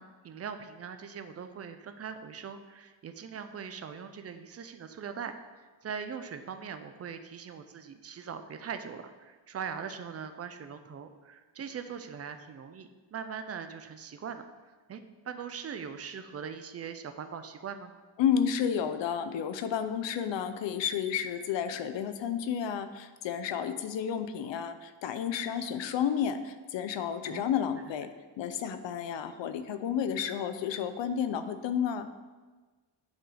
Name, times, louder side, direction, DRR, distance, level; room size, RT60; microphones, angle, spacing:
voice 1, 0.0-5.3 5.8-14.4 14.9-17.9 27.2-27.5, right 7 dB, 35° right, 8 dB, 0.4 m, -41 dB
voice 2, 18.2-28.1 28.4-32.1, left 8 dB, 75° left, 10 dB, 0.6 m, -31 dB
9.3 x 3.8 x 3.3 m, 1.3 s
wide cardioid pair, 145°, 45 cm